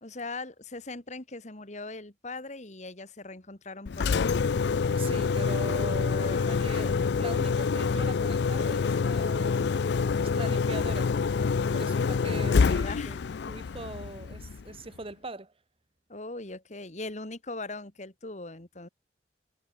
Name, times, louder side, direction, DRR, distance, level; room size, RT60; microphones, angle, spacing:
voice 1, 0.0-4.4 6.1-7.0 12.8-13.2 16.1-18.9, left 3 dB, 40° left, 2.2 m, -40 dB
Engine, 3.9-14.8, left 5 dB, 65° left, 0.4 m, -27 dB
voice 2, 5.0-9.7 10.2-11.2 11.7-13.2 13.5-15.5, right 2 dB, 30° right, 1.3 m, -41 dB
head